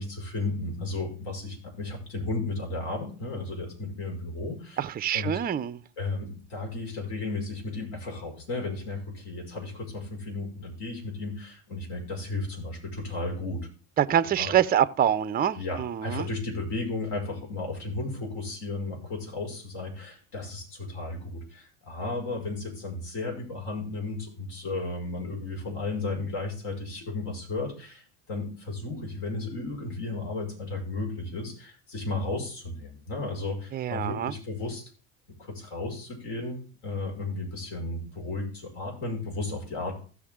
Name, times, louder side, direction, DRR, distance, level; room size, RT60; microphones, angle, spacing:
voice 1, 0.0-4.8 5.1-5.4 6.0-13.6 14.4-14.5 15.6-34.9 35.4-40.0, left 2 dB, 65° left, 5.5 m, -34 dB
voice 2, 4.8-5.8 14.0-16.3 33.7-34.3, right 10 dB, 20° right, 0.5 m, -25 dB
16.0 x 6.3 x 3.7 m
hypercardioid pair, 90°, 43 cm